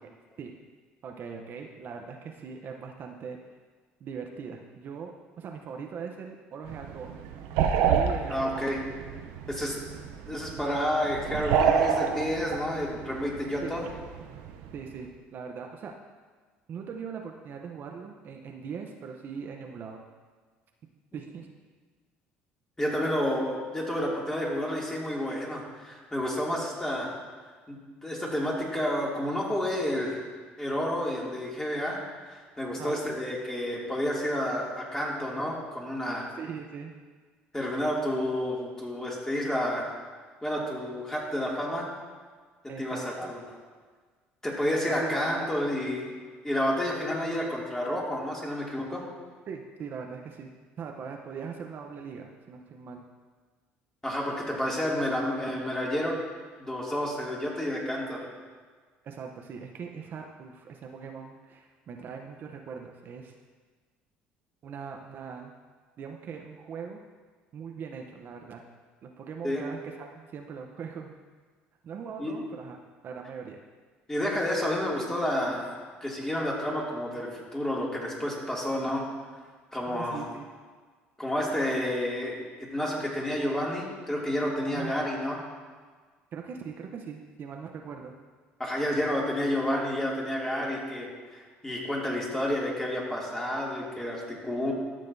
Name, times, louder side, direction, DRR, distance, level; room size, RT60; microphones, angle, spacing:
voice 1, 1.0-3.4 4.0-7.2 7.9-8.7 13.6-13.8 14.7-15.9 16.7-20.0 21.1-21.5 32.7-33.0 36.3-36.9 42.7-43.3 44.9-45.3 49.5-50.5 50.8-53.0 58.2-58.3 59.0-63.3 64.6-65.5 66.0-67.0 67.5-68.6 69.0-71.1 71.8-72.8 73.0-73.6 79.9-80.5 84.7-84.9 86.3-88.1, right 6 dB, 50° right, 2 dB, 0.8 m, -40 dB
sound 1, 6.6-15.0, right 7 dB, 85° right, 0.6 m, -29 dB
voice 2, 8.3-8.8 9.5-9.8 10.3-13.8 22.8-27.1 27.7-30.2 30.6-32.0 32.3-36.3 37.5-39.9 40.4-41.9 42.8-43.6 44.4-46.1 46.4-49.0 54.0-56.2 56.6-58.2 69.4-69.6 72.2-72.4 74.1-79.0 79.7-80.2 81.2-85.4 88.6-91.1 91.6-94.7, left 1 dB, 10° left, -4 dB, 2.5 m, -30 dB
13.0 x 6.6 x 2.7 m, 1.5 s
supercardioid pair, 90°, 4 cm